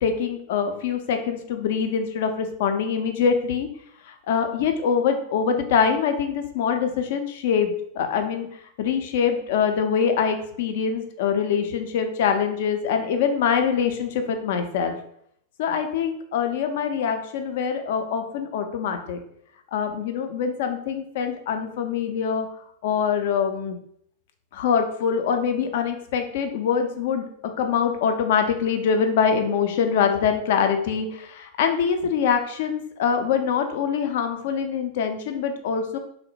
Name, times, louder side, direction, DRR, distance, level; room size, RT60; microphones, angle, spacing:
voice 1, 0.0-3.7 4.3-8.5 8.8-15.0 15.6-19.2 19.7-22.5 22.8-23.8 24.5-36.0, left 7 dB, 55° left, 6 dB, 0.3 m, -24 dB
2.9 x 2.0 x 2.6 m, 0.68 s
figure-of-eight pair, 90°, 0 cm